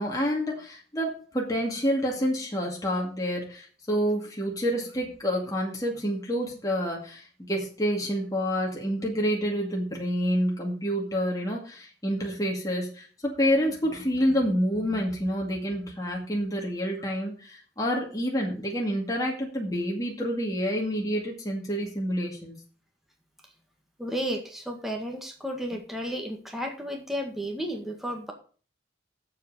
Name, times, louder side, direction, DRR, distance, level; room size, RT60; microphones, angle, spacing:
voice 1, 0.0-22.6, equal, 20° left, -2 dB, 2.2 m, -28 dB
voice 2, 24.0-28.3, equal, ahead, 2 dB, 1.7 m, -33 dB
7.4 x 6.5 x 8.1 m, 0.40 s
head